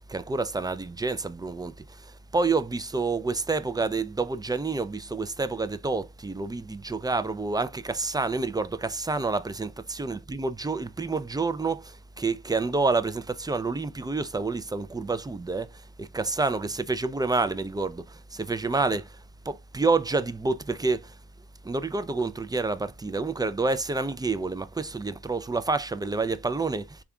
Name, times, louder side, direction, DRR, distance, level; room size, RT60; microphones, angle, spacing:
voice 1, 0.1-15.7 16.0-19.2 19.5-21.1 21.6-27.0, right 3 dB, 10° right, 0.3 m, -28 dB
3.4 x 2.4 x 3.5 m
cardioid pair, 60°, 38 cm